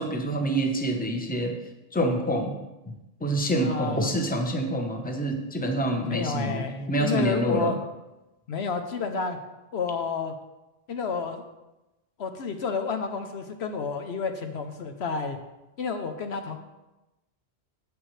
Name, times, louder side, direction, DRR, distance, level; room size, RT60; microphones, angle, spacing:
voice 1, 0.0-1.6 1.9-2.6 2.9-3.0 3.2-7.7, right 1 dB, 10° left, 3 dB, 0.9 m, -27 dB
voice 2, 3.6-4.1 6.0-7.8 8.5-9.4 9.7-10.3 10.9-11.5 12.2-15.4 15.8-16.6, left 5 dB, 70° left, 6 dB, 1.0 m, -30 dB
10.5 x 8.1 x 3.2 m, 1.0 s
omnidirectional pair, 1.2 m